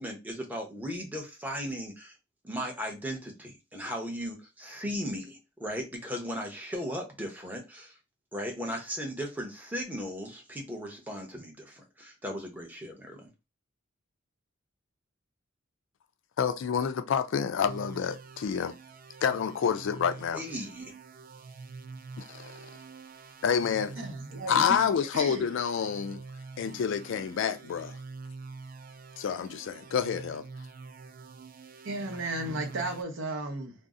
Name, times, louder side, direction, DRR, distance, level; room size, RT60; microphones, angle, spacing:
voice 1, 0.0-2.2 2.4-7.9 8.3-13.3 20.3-20.9, equal, 10° right, 0.8 m, -37 dB
voice 2, 16.4-18.7 19.2-20.4 22.2-22.5 23.4-23.9 24.5-26.2 26.6-28.0 29.2-30.4, left 7 dB, 65° left, 0.3 m, -28 dB
sound 1, 17.7-33.0, right 4 dB, 45° right, 0.3 m, -46 dB
voice 3, 24.0-25.4 26.6-26.8 27.4-27.5 31.8-33.7, right 2 dB, 65° right, 0.8 m, -35 dB
2.6 x 2.0 x 3.6 m
head